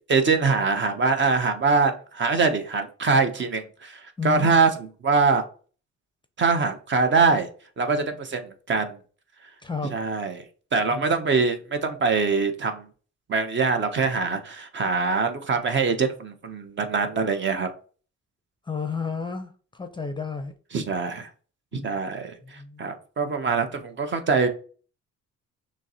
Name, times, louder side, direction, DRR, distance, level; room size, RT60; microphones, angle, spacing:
voice 1, 0.1-4.7 5.0-5.4 6.4-7.5 7.8-9.0 9.8-10.5 10.7-12.9 13.3-17.7 20.7-21.3 21.8-24.5, right 4 dB, 40° right, 0.6 m, -23 dB
voice 2, 4.2-4.5 9.6-9.9 10.9-11.0 18.6-20.5 21.7-21.9 22.4-22.8, left 5 dB, 15° left, 0.5 m, -32 dB
6.1 x 2.0 x 2.8 m
cardioid pair, 90°, 30 cm